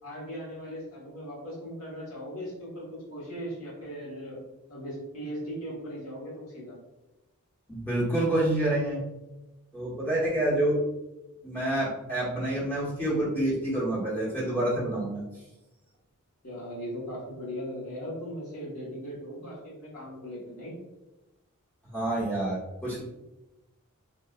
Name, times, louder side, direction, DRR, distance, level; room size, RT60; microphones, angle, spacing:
voice 1, 0.0-4.4 4.7-6.8 16.4-20.8, equal, 70° left, -7 dB, 1.3 m, -38 dB
voice 2, 7.7-9.0 9.7-10.8 11.4-15.2 21.9-23.0, right 1 dB, 10° left, -8 dB, 1.1 m, -27 dB
3.5 x 2.3 x 2.4 m, 1.0 s
head